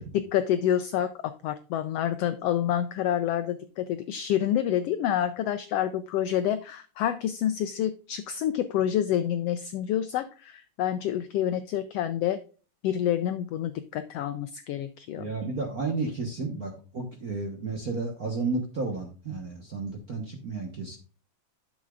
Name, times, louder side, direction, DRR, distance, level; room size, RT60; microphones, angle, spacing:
voice 1, 0.1-12.4 12.8-15.3, left 10 dB, 80° left, 10 dB, 1.4 m, -28 dB
voice 2, 15.2-21.0, right 3 dB, 50° right, 2 dB, 1.1 m, -32 dB
11.5 x 7.4 x 2.4 m, 0.37 s
omnidirectional pair, 3.3 m